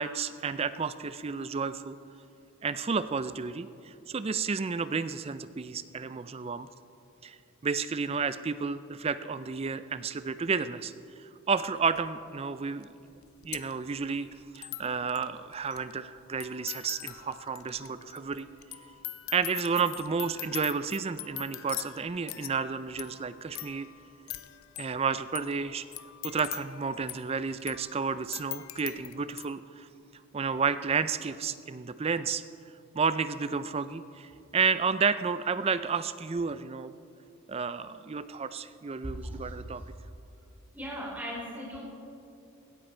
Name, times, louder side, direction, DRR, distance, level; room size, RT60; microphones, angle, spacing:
voice 1, 0.0-2.0 2.6-6.7 7.2-7.4 7.6-10.9 11.5-12.9 13.4-14.3 14.5-18.5 19.3-23.9 24.8-25.9 26.2-29.9 30.3-32.4 32.9-36.9 37.5-39.8, right 5 dB, 25° right, 13 dB, 0.4 m, -31 dB
sound 1, 12.0-12.1 12.8-12.9 13.1-29.5, left 15 dB, 70° left, 0.6 m, -43 dB
voice 2, 40.7-41.8, equal, 5° right, -5 dB, 4.0 m, -38 dB
16.5 x 14.0 x 4.4 m, 2.6 s
head